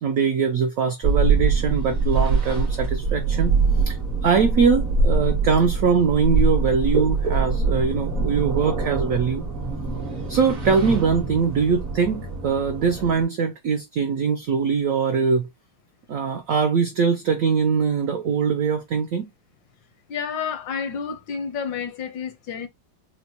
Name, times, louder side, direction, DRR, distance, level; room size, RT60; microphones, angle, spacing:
voice 1, 0.0-3.6 3.9-9.4 10.3-15.5 16.1-19.3, right 6 dB, 80° right, 0.7 m, -22 dB
sound 1, 1.0-13.2, right 4 dB, 40° right, 0.6 m, -24 dB
voice 2, 20.1-22.7, left 6 dB, 90° left, 1.5 m, -30 dB
4.4 x 2.1 x 2.7 m
omnidirectional pair, 2.0 m